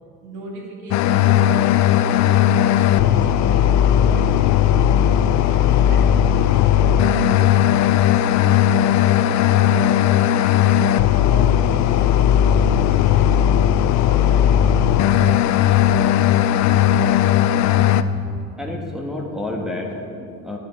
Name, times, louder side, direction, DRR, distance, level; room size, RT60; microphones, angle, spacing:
voice 1, 0.2-5.0 5.5-10.7 11.2-16.4 19.3-19.5, right 1 dB, 80° right, -2 dB, 2.6 m, -37 dB
sound 1, 0.9-18.0, left 10 dB, 65° left, 0.5 m, -16 dB
voice 2, 17.5-18.3 18.6-20.6, left 1 dB, ahead, -2 dB, 1.4 m, -30 dB
11.5 x 7.9 x 4.6 m, 2.4 s
cardioid pair, 120°, 30 cm